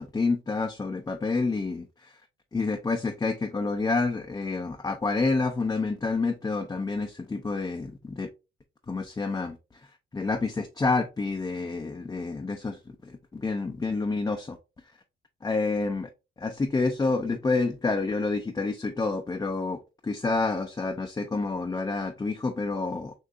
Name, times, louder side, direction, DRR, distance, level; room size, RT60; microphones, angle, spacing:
voice 1, 0.0-2.1 2.5-8.3 8.9-9.6 10.1-14.6 15.4-16.1 16.4-23.1, left 3 dB, 20° left, 0.6 m, -28 dB
6.6 x 2.6 x 2.5 m
cardioid pair, 90°, 20 cm